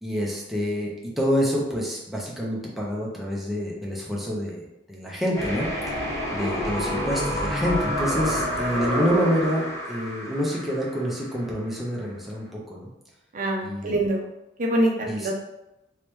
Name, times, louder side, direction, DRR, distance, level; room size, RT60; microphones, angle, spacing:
voice 1, 0.0-6.0 6.3-12.9 13.6-14.0 15.1-15.3, equal, ahead, -4 dB, 0.6 m, -27 dB
sound 1, 5.3-11.3, equal, 15° left, 1.2 m, -28 dB
voice 2, 13.3-14.3 14.6-15.3, right 1 dB, 45° right, 0 dB, 0.6 m, -24 dB
3.2 x 3.2 x 3.1 m, 0.90 s
head